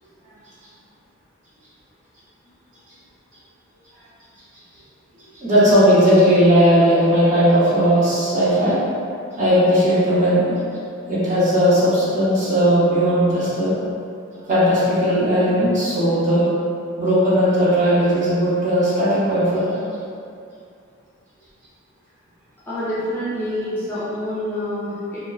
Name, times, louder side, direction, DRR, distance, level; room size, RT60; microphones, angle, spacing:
voice 1, 5.3-8.8 9.4-10.6 11.1-13.7 14.5-16.5 17.0-19.8, equal, 35° right, -11 dB, 0.8 m, -17 dB
voice 2, 22.7-25.2, left 1 dB, 10° left, -12 dB, 0.5 m, -27 dB
2.8 x 2.2 x 2.3 m, 2.5 s
head